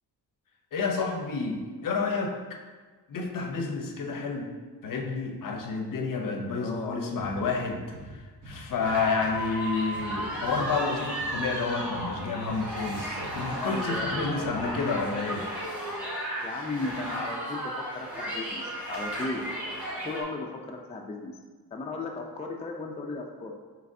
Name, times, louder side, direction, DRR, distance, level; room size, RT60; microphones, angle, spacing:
voice 1, 0.7-2.4 3.1-4.5 4.8-15.5, left 4 dB, 55° left, 3 dB, 0.7 m, -30 dB
voice 2, 6.5-7.1 10.4-10.5 13.6-14.7 15.0-15.1 16.4-19.5 20.0-21.3 21.7-23.5, left 3 dB, 20° left, 2 dB, 0.3 m, -36 dB
sound 1, 7.2-15.2, right 1 dB, 55° right, 1.3 m, -46 dB
sound 2, 8.8-20.2, equal, 5° right, 1.5 m, -34 dB
5.1 x 3.2 x 2.6 m, 1.4 s
cardioid pair, 95°, 38 cm